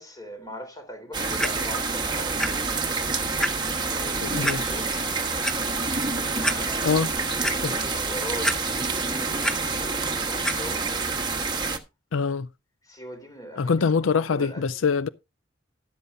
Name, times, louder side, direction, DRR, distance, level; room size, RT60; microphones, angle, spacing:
voice 1, 0.0-2.9 3.9-4.9 6.1-10.9 11.2-11.6 12.9-14.7, equal, 20° left, 3.6 m, -41 dB
sound 1, 1.1-11.8, right 4 dB, 25° right, 1.3 m, -27 dB
Clock, 1.4-1.5 2.4-2.5 2.9-3.0 3.4-3.5 4.4-4.6 5.2-5.5 6.1-6.2 6.4-6.6 7.0-7.6 8.4-8.9 9.2-9.5 10.4-10.5 11.3-11.4, equal, 5° left, 0.8 m, -26 dB
voice 2, 4.2-4.7 6.8-7.1 7.6-7.8 12.1-12.5 13.6-15.1, left 5 dB, 90° left, 0.5 m, -24 dB
13.0 x 11.5 x 2.6 m
head